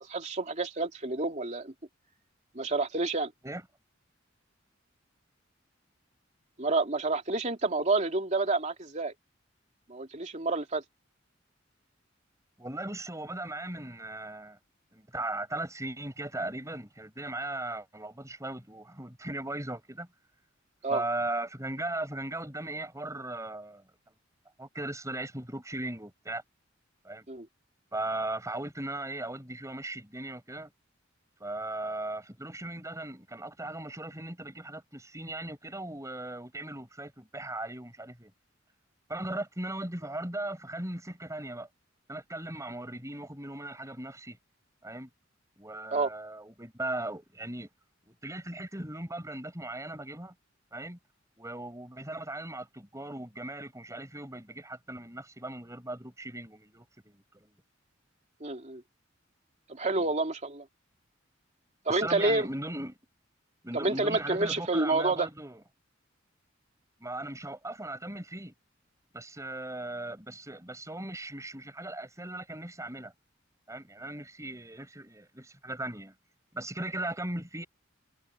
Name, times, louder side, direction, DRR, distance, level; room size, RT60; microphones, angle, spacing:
voice 1, 0.1-1.7 2.5-3.3 6.6-9.1 9.9-10.8 20.8-21.0 27.3-27.5 45.9-46.1 58.4-58.8 59.7-60.6 61.9-62.5 63.7-65.3, right 3 dB, 35° right, 2.8 m, -29 dB
voice 2, 12.6-14.6 14.9-20.1 20.9-23.8 24.6-26.4 27.0-27.2 27.9-30.7 31.4-38.3 39.1-41.7 42.1-44.4 44.8-45.1 45.6-47.7 48.1-50.3 50.7-51.0 51.4-57.5 59.9-60.1 61.9-63.0 63.6-65.6 67.0-68.5 69.1-73.1 73.7-76.1 76.5-77.7, right 1 dB, 15° right, 6.3 m, -38 dB
head